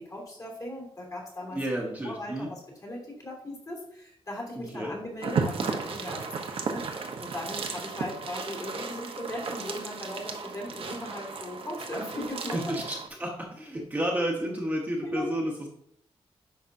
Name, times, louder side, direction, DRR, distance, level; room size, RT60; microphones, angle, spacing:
voice 1, 0.0-1.6 2.0-6.8 7.2-12.7 15.0-15.4, left 1 dB, 35° left, -2 dB, 3.0 m, -38 dB
voice 2, 1.5-2.5 4.6-5.0 12.5-12.8 13.2-15.7, right 1 dB, 15° right, -2 dB, 1.1 m, -31 dB
sound 1, 5.2-13.1, right 5 dB, 65° right, 0.9 m, -34 dB
9.9 x 5.9 x 2.6 m, 0.72 s
wide cardioid pair, 160°, 10 cm